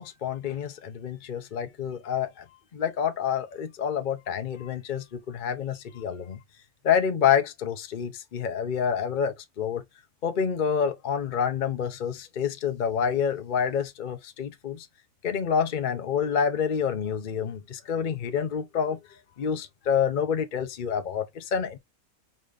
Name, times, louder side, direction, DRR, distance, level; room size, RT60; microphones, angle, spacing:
voice 1, 0.0-2.4 2.7-6.4 6.8-9.8 10.2-14.8 15.2-19.0 19.4-21.8, left 7 dB, 45° left, 0.7 m, -28 dB
5.0 x 4.3 x 2.4 m
omnidirectional pair, 1.6 m